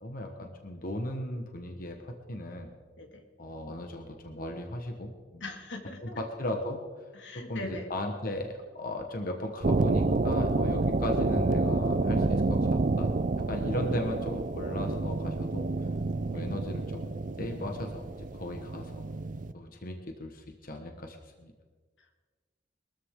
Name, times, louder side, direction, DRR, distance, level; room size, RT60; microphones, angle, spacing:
voice 1, 0.0-2.7 3.4-5.4 6.0-6.8 7.3-13.1 13.5-15.7 16.3-17.1 17.4-19.0 19.5-21.5, left 1 dB, 50° left, 4 dB, 1.3 m, -37 dB
voice 2, 5.4-6.2 7.1-7.9 16.3-16.4, left 2 dB, 85° left, 3 dB, 2.2 m, -41 dB
sound 1, 9.6-19.5, right 3 dB, 45° right, 0.6 m, -29 dB
22.0 x 14.0 x 3.8 m, 1.4 s
head